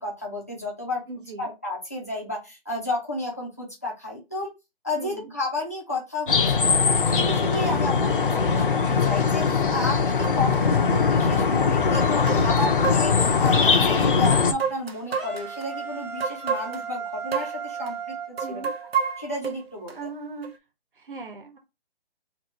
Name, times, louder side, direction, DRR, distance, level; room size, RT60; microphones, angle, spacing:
voice 1, 0.0-1.0 1.4-4.5 4.8-6.8 7.0-18.6 19.2-20.0, left 2 dB, 15° left, -4 dB, 0.6 m, -32 dB
voice 2, 1.1-1.5 5.0-5.3 7.7-8.1 18.4-18.7 19.9-20.5 21.0-21.6, right 3 dB, 55° right, 4 dB, 1.2 m, -38 dB
sound 1, 6.3-14.5, left 5 dB, 55° left, 0.7 m, -21 dB
sound 2, 10.2-10.4 11.3-11.4 11.9-13.6 14.3-15.7 16.2-16.9 17.3-17.6 17.9-18.0 18.4-19.9 20.4-20.6, right 6 dB, 70° right, 0.9 m, -30 dB
sound 3, 15.1-19.2, right 6 dB, 25° right, 1.2 m, -36 dB
3.0 x 2.9 x 4.0 m, 0.25 s
hypercardioid pair, 180°, 32 cm